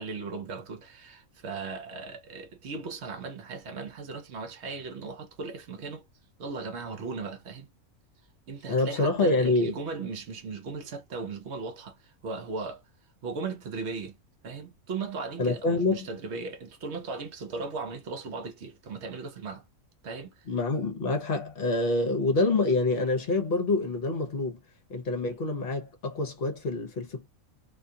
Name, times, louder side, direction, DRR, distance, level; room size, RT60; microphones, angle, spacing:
voice 1, 0.0-6.0 6.4-7.7 8.5-12.8 13.2-14.1 14.4-19.6 20.0-20.5, right 4 dB, 60° right, 0.9 m, -37 dB
voice 2, 8.7-9.8 15.4-16.1 20.5-24.6 24.9-27.3, left 2 dB, 50° left, 0.9 m, -26 dB
2.5 x 2.3 x 2.6 m
omnidirectional pair, 1.5 m